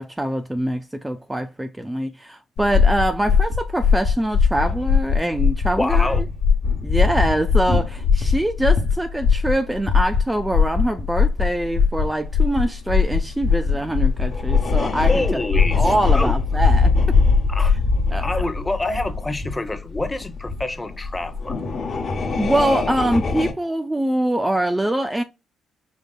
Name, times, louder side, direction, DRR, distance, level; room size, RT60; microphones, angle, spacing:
voice 1, 0.0-6.1 6.8-15.3 15.8-16.9 18.1-18.3 22.4-25.2, right 1 dB, 10° right, 0.4 m, -24 dB
sound 1, 2.6-18.0, left 6 dB, 85° left, 1.3 m, -20 dB
sound 2, 4.5-10.2 10.4-10.5 11.0-11.1 12.1-12.2 12.6-12.7 13.2-23.5, left 3 dB, 50° left, 1.0 m, -25 dB
voice 2, 5.8-6.2 15.1-16.3 17.5-17.8 18.2-21.6, left 2 dB, 15° left, 0.8 m, -27 dB
5.1 x 3.4 x 2.3 m
cardioid pair, 90°, 0 cm